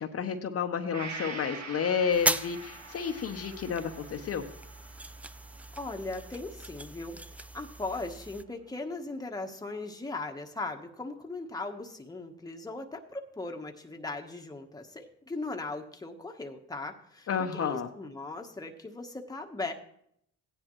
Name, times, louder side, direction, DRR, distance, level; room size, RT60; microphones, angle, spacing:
voice 1, 0.0-4.5 17.3-17.9, left 7 dB, 50° left, 5 dB, 0.9 m, -31 dB
Gong, 0.9-8.6 9.0-9.1, right 4 dB, 60° right, 2.0 m, -46 dB
sound 1, 2.1-8.4, right 1 dB, 5° right, 0.3 m, -37 dB
voice 2, 5.8-19.7, left 2 dB, 10° left, 3 dB, 1.2 m, -38 dB
15.5 x 9.9 x 3.1 m, 0.71 s
cardioid pair, 90°, 30 cm